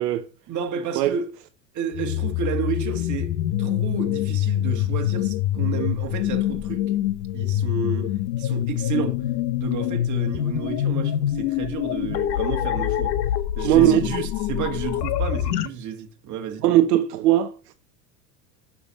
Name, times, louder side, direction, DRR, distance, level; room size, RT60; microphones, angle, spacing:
voice 1, 0.5-1.3 1.7-6.8 7.3-9.2 9.6-13.2 13.6-16.8, right 7 dB, 35° right, 1.7 m, -31 dB
sound 1, 1.9-15.7, left 12 dB, 75° left, 0.8 m, -25 dB
voice 2, 13.6-14.1 16.6-17.7, right 13 dB, 70° right, 0.7 m, -19 dB
6.9 x 5.8 x 4.1 m
hypercardioid pair, 95°, 48 cm